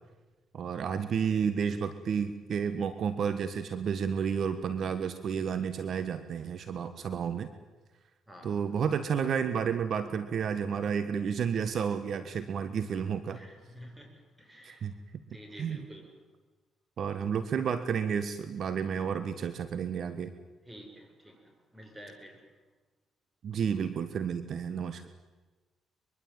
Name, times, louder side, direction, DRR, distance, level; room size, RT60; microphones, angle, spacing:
voice 1, 0.5-7.5 8.4-13.4 14.6-14.9 15.6-15.8 17.0-20.3 23.4-25.1, right 7 dB, 60° right, 11 dB, 1.5 m, -31 dB
voice 2, 13.3-14.1 14.4-14.9 15.3-16.1 20.7-21.4 21.7-22.4, equal, 10° right, 4 dB, 7.6 m, -49 dB
23.5 x 23.5 x 9.1 m, 1.3 s
cardioid pair, 90°, 0 cm